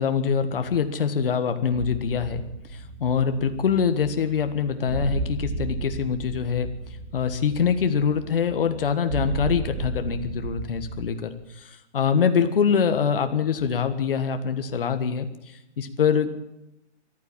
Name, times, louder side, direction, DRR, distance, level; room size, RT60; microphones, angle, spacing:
voice 1, 0.0-2.4 2.7-6.7 7.1-16.3, left 7 dB, 50° left, 8 dB, 1.5 m, -24 dB
sound 1, 1.7-11.1, right 3 dB, 80° right, 4.0 m, -34 dB
14.0 x 11.5 x 8.8 m, 0.88 s
hypercardioid pair, 175°, 35 cm